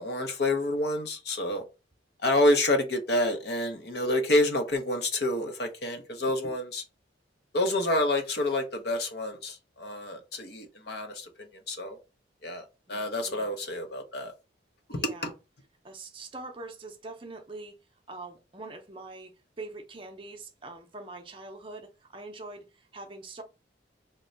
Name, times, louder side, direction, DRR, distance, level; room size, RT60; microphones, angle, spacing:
voice 1, 0.0-1.6 2.2-6.8 7.5-12.0 12.4-14.3 14.9-15.3, left 1 dB, 55° left, 0.7 m, -28 dB
voice 2, 12.9-13.6 14.9-15.4 15.8-17.7 18.1-19.3 19.6-23.4, right 2 dB, 25° right, 0.6 m, -43 dB
3.1 x 2.2 x 3.8 m
head